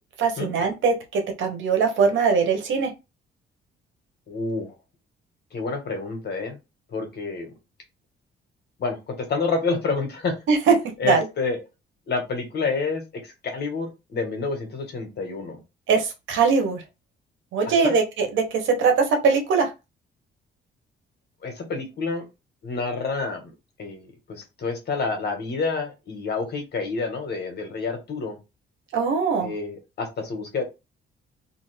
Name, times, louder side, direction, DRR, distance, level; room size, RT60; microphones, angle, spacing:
voice 1, 0.2-2.9 10.5-10.7 11.0-11.2 15.9-16.8 17.5-18.4 18.8-19.7 28.9-29.5, right 5 dB, 75° right, 4 dB, 1.1 m, -21 dB
voice 2, 4.3-4.7 5.5-6.6 6.9-7.5 8.8-10.4 11.0-11.6 12.1-15.6 17.7-18.0 21.4-22.2 22.6-23.5 23.8-28.4 29.4-30.6, left 4 dB, 55° left, 4 dB, 1.3 m, -28 dB
2.6 x 2.6 x 3.2 m, 0.25 s
cardioid pair, 90°, 20 cm